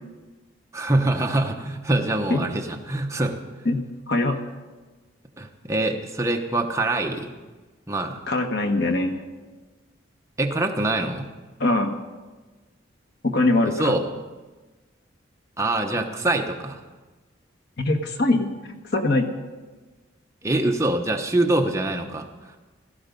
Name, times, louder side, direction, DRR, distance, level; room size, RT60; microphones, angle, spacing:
voice 1, 0.7-3.4 5.4-7.3 7.9-8.2 10.4-11.3 13.6-14.1 15.6-16.8 20.4-22.5, right 2 dB, 15° right, 3 dB, 1.0 m, -24 dB
voice 2, 4.1-4.4 8.3-9.3 11.6-12.0 13.2-13.9 17.8-18.5 18.9-19.3, left 2 dB, 55° left, 5 dB, 1.5 m, -22 dB
16.5 x 14.0 x 5.3 m, 1.3 s
head